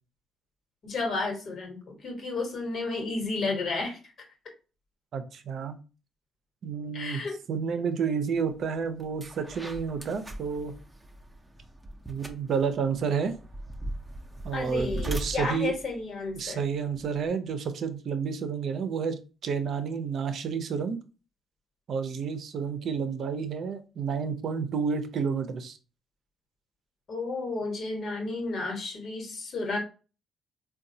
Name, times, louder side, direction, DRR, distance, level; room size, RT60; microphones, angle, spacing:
voice 1, 0.8-4.0 6.9-7.4 14.5-16.6 27.1-29.8, left 3 dB, 55° left, 2 dB, 1.2 m, -32 dB
voice 2, 5.1-5.8 6.6-7.2 7.5-10.7 12.1-13.3 14.4-15.7 16.3-21.0 21.9-25.8, right 6 dB, 60° right, 9 dB, 0.5 m, -30 dB
sound 1, 8.5-8.6 9.0-17.3, right 1 dB, 10° right, 0.6 m, -40 dB
3.8 x 2.3 x 2.6 m, 0.33 s
cardioid pair, 90°, 0 cm